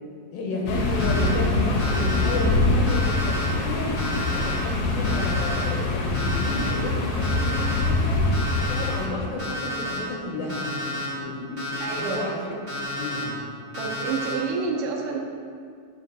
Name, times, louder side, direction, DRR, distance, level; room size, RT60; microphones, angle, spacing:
voice 1, 0.3-3.9 4.3-8.3 8.7-12.6 13.0-13.3, left 2 dB, 85° left, -1 dB, 3.0 m, -32 dB
sound 1, 0.7-9.1, left 2 dB, 65° left, 2.2 m, -24 dB
Alarm, 0.9-1.3 1.8-2.4 2.9-3.5 4.0-4.5 5.0-5.6 6.1-6.7 7.2-7.8 8.3-8.9 9.4-10.0 10.5-11.1 11.6-12.2 12.7-13.2 13.7-14.3, left 1 dB, 25° right, 1.3 m, -31 dB
voice 2, 11.8-12.2 13.8-15.2, right 5 dB, 75° right, 1 dB, 2.2 m, -29 dB
11.5 x 4.9 x 4.1 m, 2.2 s
omnidirectional pair, 4.0 m